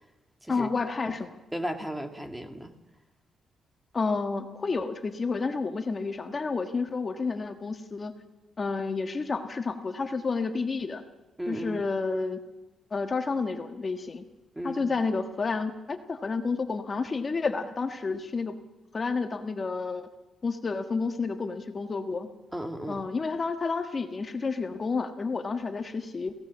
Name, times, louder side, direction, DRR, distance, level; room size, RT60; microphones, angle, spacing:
voice 1, 0.5-1.4 3.9-8.1 8.6-11.0 11.5-12.4 12.9-14.2 14.6-18.6 18.9-20.1 20.4-22.3 22.9-26.3, left 4 dB, 35° left, 6 dB, 1.5 m, -30 dB
voice 2, 1.5-2.7 11.4-11.8 14.5-14.9 22.5-23.1, equal, 5° right, 5 dB, 2.2 m, -35 dB
27.5 x 17.0 x 7.4 m, 1.0 s
cardioid pair, 105°, 0 cm